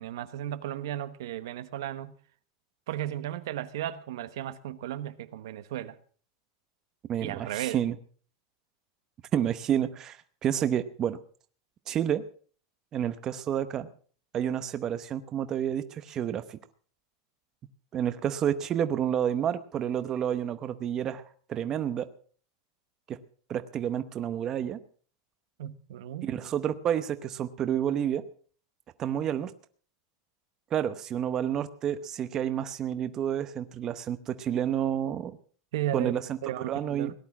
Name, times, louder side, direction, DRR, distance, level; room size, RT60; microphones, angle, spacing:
voice 1, 0.0-2.1 2.9-6.0 7.2-7.8 25.6-26.3 35.7-37.1, right 12 dB, 80° right, 1.1 m, -35 dB
voice 2, 7.1-8.0 9.3-11.2 11.9-12.2 12.9-13.9 14.3-16.6 17.9-21.2 21.5-22.1 23.1-23.2 23.5-24.8 26.2-28.2 29.0-29.5 30.7-35.3 35.9-36.4 36.7-37.1, right 9 dB, 25° right, 0.8 m, -29 dB
18.0 x 11.0 x 6.0 m
supercardioid pair, 165°, 2 cm